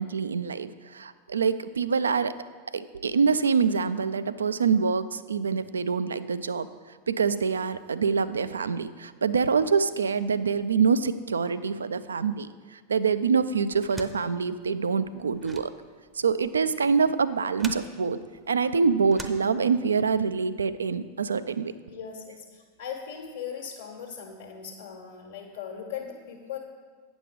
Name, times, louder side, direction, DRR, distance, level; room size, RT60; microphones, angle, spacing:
voice 1, 0.0-2.3 2.7-6.7 7.1-12.5 12.9-15.7 16.2-18.2 18.5-21.7, right 5 dB, 70° right, 13 dB, 0.3 m, -25 dB
sound 1, 13.7-20.1, right 2 dB, 10° right, 0.6 m, -45 dB
voice 2, 16.3-16.7 18.7-18.9 21.9-26.6, left 7 dB, 60° left, 0 dB, 1.2 m, -39 dB
9.0 x 6.1 x 5.0 m, 1.5 s
figure-of-eight pair, 90°, 0 cm